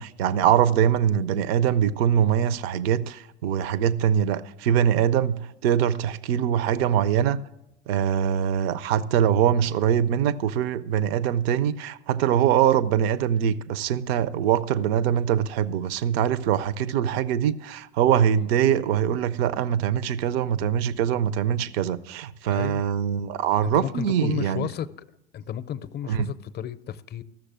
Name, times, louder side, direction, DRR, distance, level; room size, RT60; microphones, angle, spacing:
voice 1, 0.0-7.4 7.9-24.7 26.1-26.3, right 9 dB, 65° right, 0.6 m, -23 dB
voice 2, 22.5-22.9 23.6-24.9 25.3-27.2, left 10 dB, 30° left, 0.6 m, -33 dB
14.5 x 6.5 x 7.5 m
hypercardioid pair, 75°, 33 cm